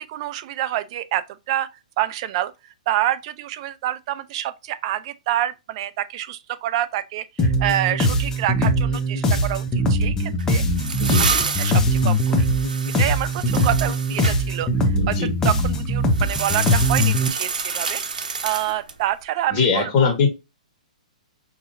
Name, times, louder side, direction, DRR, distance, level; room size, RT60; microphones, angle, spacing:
voice 1, 0.0-1.7 2.0-2.5 2.9-10.6 11.2-12.4 13.0-18.0 18.4-20.1, right 13 dB, 45° right, 0.5 m, -27 dB
sound 1, 7.4-17.3, equal, 15° left, 0.7 m, -21 dB
sound 2, 10.4-14.4 16.1-19.0, right 5 dB, 85° right, 0.8 m, -28 dB
voice 2, 11.0-11.4 15.0-15.3 19.5-20.3, left 5 dB, 35° left, 1.5 m, -21 dB
5.2 x 2.9 x 2.6 m
hypercardioid pair, 140°, 4 cm